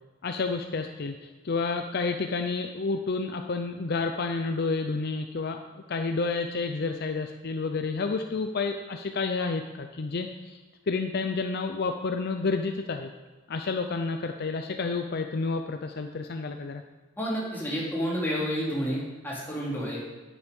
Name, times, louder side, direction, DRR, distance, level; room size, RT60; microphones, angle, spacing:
voice 1, 0.2-10.6 10.9-13.1 13.5-16.8, left 4 dB, 50° left, 6 dB, 0.5 m, -30 dB
voice 2, 17.2-20.0, equal, 10° left, -6 dB, 2.8 m, -30 dB
9.9 x 8.0 x 5.3 m, 1.3 s
head